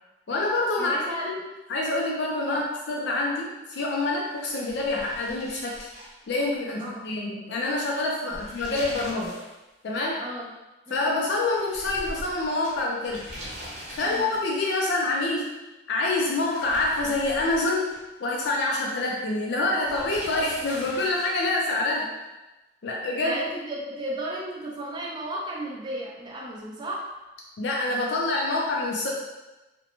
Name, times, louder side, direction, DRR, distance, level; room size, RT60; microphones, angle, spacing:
voice 1, 0.3-1.4 1.7-5.9 6.3-9.3 9.8-10.2 10.9-13.2 14.0-15.5 15.9-17.9 18.2-22.1 22.8-23.4 27.6-29.1, left 2 dB, 65° left, -2 dB, 0.4 m, -26 dB
voice 2, 0.8-1.3 2.5-2.7 6.8-7.0 8.2-8.4 10.2-10.5 10.9-11.1 14.0-14.3 23.2-27.1, right 1 dB, 25° right, -4 dB, 0.3 m, -34 dB
sound 1, 4.3-6.8 7.0-7.1 8.1-9.5 9.8-9.9 11.5-14.7 16.3-18.2 19.8-21.5, equal, 40° right, 0.7 m, -41 dB
2.5 x 2.1 x 2.8 m, 1.1 s
head